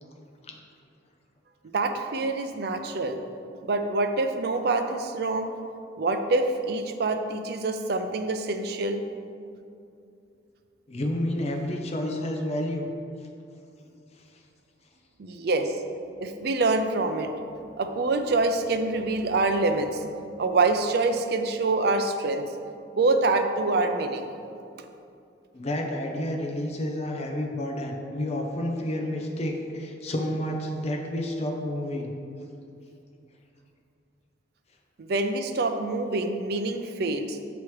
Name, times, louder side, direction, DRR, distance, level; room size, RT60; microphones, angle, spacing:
voice 1, 1.6-3.2 3.6-5.5 6.0-9.0 15.2-15.7 16.2-17.3 17.8-20.0 20.4-22.4 22.9-24.3 35.0-37.4, right 3 dB, 55° right, 6 dB, 0.4 m, -26 dB
voice 2, 10.9-12.9 25.5-32.1, left 1 dB, 35° left, 2 dB, 0.5 m, -30 dB
7.0 x 3.1 x 4.7 m, 2.5 s
head